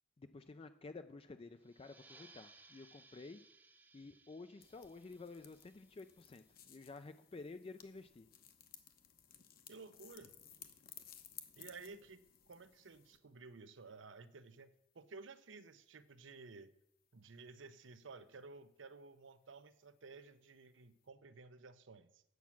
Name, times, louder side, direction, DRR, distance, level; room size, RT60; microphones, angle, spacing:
voice 1, 0.2-3.4 3.9-8.3, left 3 dB, 30° left, 0.4 m, -52 dB
sound 1, 1.6-6.9, right 3 dB, 10° right, 0.8 m, -64 dB
sound 2, 4.6-13.2, left 9 dB, 50° left, 0.9 m, -59 dB
voice 2, 9.7-10.3 11.6-16.7 17.1-22.2, right 4 dB, 80° right, 0.7 m, -55 dB
9.3 x 7.2 x 5.9 m
head